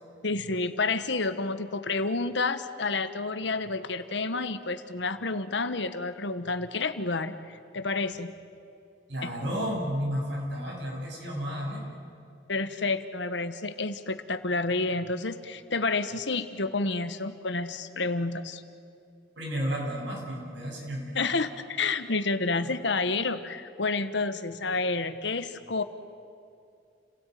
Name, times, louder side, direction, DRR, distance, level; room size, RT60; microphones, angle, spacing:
voice 1, 0.2-8.3 9.2-9.3 12.5-18.6 21.1-25.8, left 3 dB, 70° left, 11 dB, 1.3 m, -29 dB
voice 2, 9.1-12.0 19.4-21.3 22.6-22.8, equal, 70° right, -1 dB, 7.5 m, -32 dB
30.0 x 17.5 x 9.3 m, 2.6 s
head